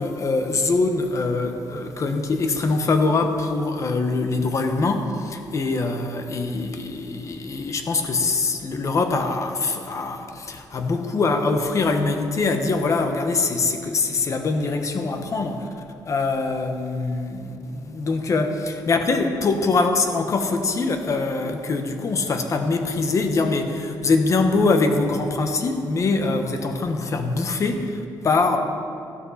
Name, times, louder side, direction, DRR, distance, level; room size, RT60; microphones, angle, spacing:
voice 1, 0.0-15.7 16.1-28.6, left 3 dB, 40° left, 6 dB, 1.2 m, -23 dB
14.5 x 12.5 x 4.2 m, 2.6 s
cardioid pair, 115°, 8 cm